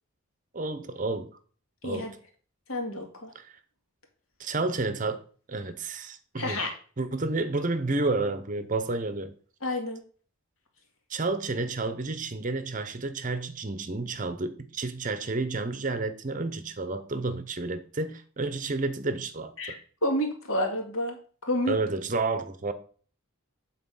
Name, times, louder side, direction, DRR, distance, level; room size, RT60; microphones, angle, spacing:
voice 1, 0.5-1.4 1.8-2.1 3.3-3.5 4.4-5.2 5.5-6.6 7.0-9.3 11.1-19.8 21.7-22.7, right 3 dB, 35° right, 0.7 m, -30 dB
voice 2, 1.8-2.1 2.7-3.3 6.4-6.7 9.6-10.0 19.6-21.2 21.4-21.8, left 1 dB, 70° left, 2.1 m, -29 dB
8.5 x 4.1 x 5.5 m
head